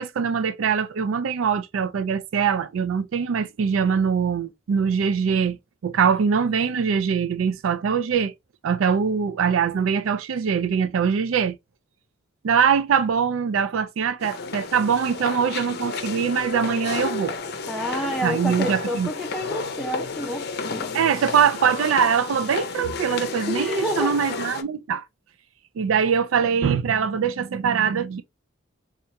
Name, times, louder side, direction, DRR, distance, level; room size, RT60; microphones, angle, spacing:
voice 1, 0.0-5.6 5.8-8.3 8.6-11.6 12.4-17.3 18.2-19.1 20.9-25.0 25.8-28.2, right 7 dB, 85° right, 0.4 m, -22 dB
sound 1, 14.2-24.6, left 4 dB, 55° left, 0.5 m, -32 dB
voice 2, 17.7-21.3 23.5-24.2, equal, ahead, 0.5 m, -30 dB
4.4 x 2.4 x 2.6 m
head